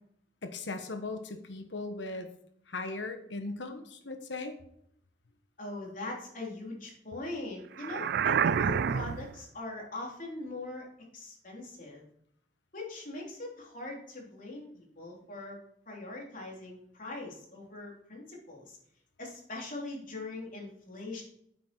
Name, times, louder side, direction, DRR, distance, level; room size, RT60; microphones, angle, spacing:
voice 1, 0.4-2.3 2.7-4.5, left 3 dB, 75° left, 7 dB, 1.3 m, -38 dB
voice 2, 5.6-10.9 11.1-12.0 12.7-15.6 15.9-18.8 19.2-21.2, left 2 dB, 50° left, -2 dB, 3.6 m, -41 dB
sound 1, 7.8-9.4, right 7 dB, 60° right, 0.4 m, -28 dB
9.2 x 8.5 x 4.6 m, 0.70 s
head